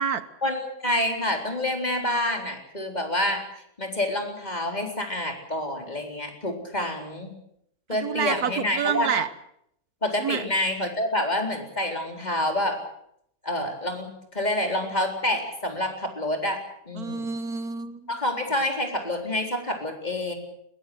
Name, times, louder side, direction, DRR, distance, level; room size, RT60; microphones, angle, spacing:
voice 1, 0.4-3.4 3.8-7.3 7.9-9.1 10.0-12.8 13.4-16.6 16.9-17.3 18.1-20.3, left 1 dB, 25° left, 3 dB, 4.3 m, -27 dB
voice 2, 7.9-9.3 10.2-10.5 17.0-18.1, right 7 dB, 75° right, 13 dB, 1.6 m, -28 dB
21.5 x 20.5 x 8.0 m, 0.73 s
omnidirectional pair, 1.6 m